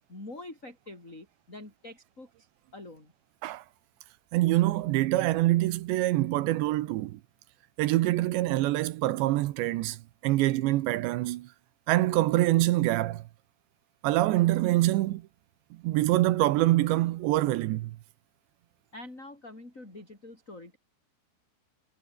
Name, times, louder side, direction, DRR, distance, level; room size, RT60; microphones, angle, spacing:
voice 1, 0.1-2.5 2.7-3.1 18.9-20.8, left 2 dB, 15° left, 6.6 m, -45 dB
voice 2, 4.3-7.2 7.8-10.0 10.2-11.5 11.9-13.2 14.0-15.2 15.8-17.9, right 16 dB, 75° right, 3.0 m, -25 dB
omnidirectional pair, 5.5 m